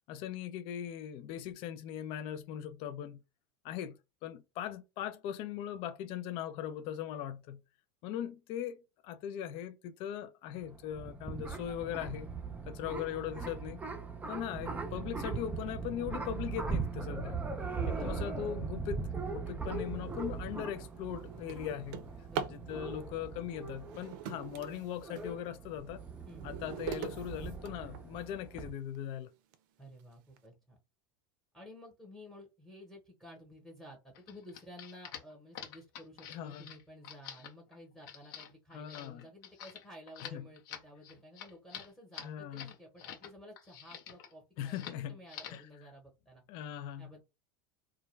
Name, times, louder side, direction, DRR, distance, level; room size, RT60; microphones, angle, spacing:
voice 1, 0.1-3.2 3.6-7.6 8.0-12.3 12.7-13.8 14.3-17.4 17.9-19.0 19.3-22.1 22.5-26.0 26.4-29.3 36.3-36.6 38.7-39.3 40.2-40.5 42.2-42.7 44.6-45.2 45.5-45.7 46.5-47.1, left 10 dB, 55° left, 0.4 m, -40 dB
sound 1, 10.6-28.7, right 4 dB, 15° right, 0.5 m, -40 dB
voice 2, 17.7-18.2 22.2-22.6 26.2-26.5 29.8-30.8 31.5-46.4 47.0-47.2, left 1 dB, ahead, 1.0 m, -53 dB
Drawer open or close, 20.0-20.2 20.7-22.7 23.7-25.3 25.9-28.3 28.9-29.0 29.5-29.6 30.0-30.4, right 8 dB, 70° right, 0.5 m, -42 dB
sound 2, 34.1-43.3 43.6-44.3 44.7-45.0 45.3-45.7, left 9 dB, 70° left, 0.8 m, -47 dB
2.2 x 2.1 x 3.1 m
supercardioid pair, 110°, 11 cm